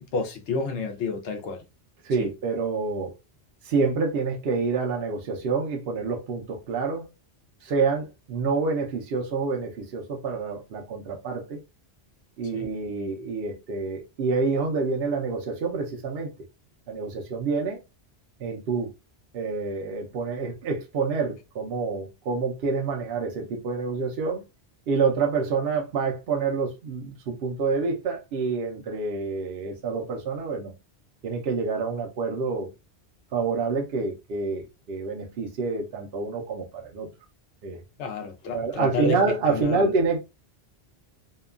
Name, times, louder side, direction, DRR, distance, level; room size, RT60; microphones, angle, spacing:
voice 1, 0.0-1.6 2.2-2.3 12.5-12.7 38.0-39.2 39.5-39.9, left 3 dB, 90° left, 0.9 m, -30 dB
voice 2, 2.0-3.1 3.6-7.1 7.6-11.6 12.4-16.3 16.9-17.8 18.4-18.9 19.3-24.4 24.9-30.7 31.2-32.7 33.3-37.1 37.6-37.8 38.5-40.2, right 4 dB, 70° right, 0.8 m, -27 dB
2.9 x 2.2 x 2.3 m
omnidirectional pair, 1.1 m